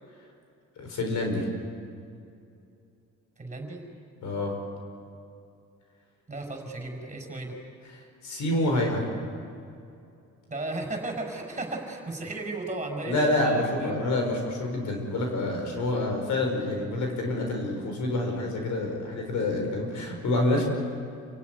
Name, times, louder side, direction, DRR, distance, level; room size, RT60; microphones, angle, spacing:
voice 1, 0.8-1.5 4.2-4.6 8.2-9.0 13.1-20.6, left 2 dB, 75° left, 2 dB, 5.9 m, -27 dB
voice 2, 3.4-3.8 6.3-7.5 10.5-13.9, right 2 dB, 25° right, 2 dB, 5.9 m, -35 dB
28.5 x 17.0 x 9.6 m, 2.5 s
cardioid pair, 90°, 30 cm